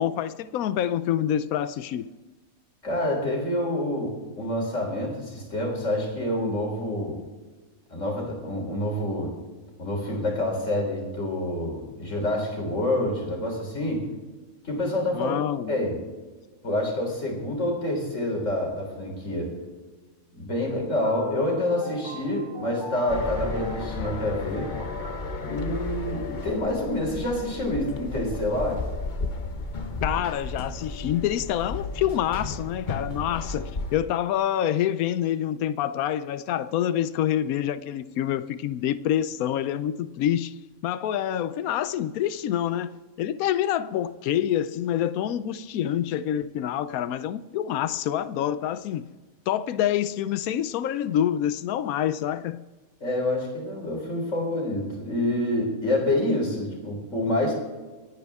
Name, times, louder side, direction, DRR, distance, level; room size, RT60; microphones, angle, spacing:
voice 1, 0.0-2.1 15.1-15.7 30.0-40.5 40.8-49.1 49.5-52.6, left 11 dB, 85° left, 1.1 m, -27 dB
voice 2, 2.8-7.2 7.9-9.3 9.8-14.0 14.6-15.3 15.7-16.0 16.6-19.5 20.3-24.7 25.4-28.8 53.0-57.5, left 1 dB, 60° left, 4.0 m, -27 dB
sound 1, 21.0-25.6, right 1 dB, 20° right, 1.4 m, -40 dB
sound 2, 23.1-34.0, left 3 dB, 35° left, 1.1 m, -33 dB
27.5 x 9.6 x 3.6 m
omnidirectional pair, 1.5 m